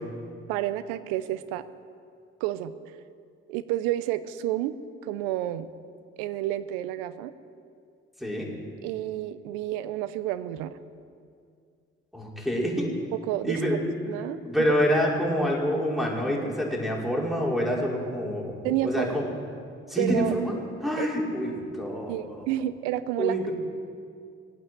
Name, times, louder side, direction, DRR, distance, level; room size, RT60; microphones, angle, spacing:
voice 1, 0.5-1.7 2.4-2.7 3.5-4.7 5.0-5.7 6.2-7.3 8.8-10.8 13.3-14.4 18.6-19.1 20.0-20.3 21.0-21.1 22.1-23.4, right 13 dB, 80° right, 14 dB, 0.7 m, -30 dB
voice 2, 12.1-12.9 13.4-13.9 14.4-19.2 19.9-20.5 20.8-22.5 23.2-23.5, equal, ahead, -3 dB, 5.4 m, -27 dB
20.0 x 9.0 x 7.9 m, 2.3 s
hypercardioid pair, 45°, 32 cm